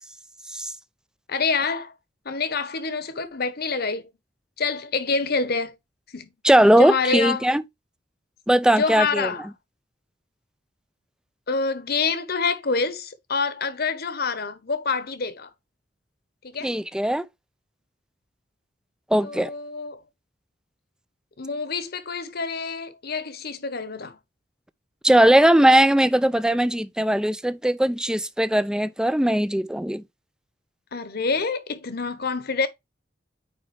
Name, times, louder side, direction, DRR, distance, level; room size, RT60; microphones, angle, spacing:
voice 1, 1.3-1.9 2.2-4.1 4.6-5.7 6.1-6.3 6.8-7.5 8.7-9.5 11.5-15.5 16.4-16.7 19.2-20.0 21.4-24.2 30.9-32.7, left 4 dB, 60° left, 1.1 m, -27 dB
voice 2, 6.4-7.6 8.5-9.3 16.6-17.3 19.1-19.5 25.0-30.0, right 1 dB, 5° right, 0.4 m, -19 dB
9.1 x 3.5 x 3.3 m
head